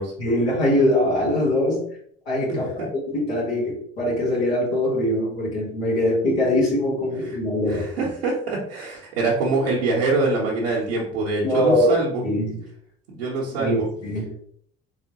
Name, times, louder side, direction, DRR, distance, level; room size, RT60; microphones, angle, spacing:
voice 1, 0.2-1.9 2.2-7.9 11.4-12.0 12.2-12.6 13.6-14.4, left 1 dB, 90° left, -7 dB, 1.4 m, -22 dB
voice 2, 2.5-2.9 7.7-12.2 13.1-13.9, right 3 dB, 85° right, -6 dB, 0.8 m, -24 dB
3.5 x 3.2 x 2.8 m, 0.62 s
hypercardioid pair, 50°, 30 cm